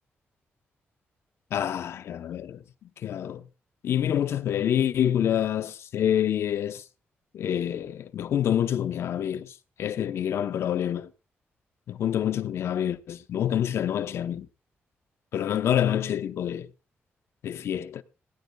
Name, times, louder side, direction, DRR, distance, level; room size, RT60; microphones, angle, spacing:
voice 1, 1.5-2.6 3.0-3.4 3.8-6.8 7.3-9.5 9.8-11.1 11.9-14.5 15.3-16.7 17.4-18.0, left 10 dB, 80° left, 0.8 m, -27 dB
18.0 x 17.5 x 2.3 m
cardioid pair, 120°, 4 cm